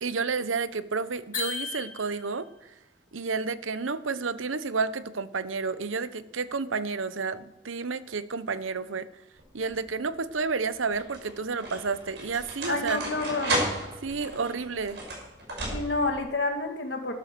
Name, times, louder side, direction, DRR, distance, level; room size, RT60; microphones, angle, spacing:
voice 1, 0.0-2.5 3.1-9.1 9.5-13.0 14.0-15.0, right 4 dB, 90° right, 15 dB, 0.8 m, -30 dB
sound 1, 1.3-2.5, left 4 dB, 45° left, 4.5 m, -35 dB
sound 2, 9.4-9.9 10.7-16.2, right 1 dB, 60° right, 6.0 m, -34 dB
voice 2, 12.7-13.6 15.7-17.1, left 2 dB, 60° left, 4 dB, 2.2 m, -29 dB
12.5 x 12.0 x 6.8 m, 0.91 s
head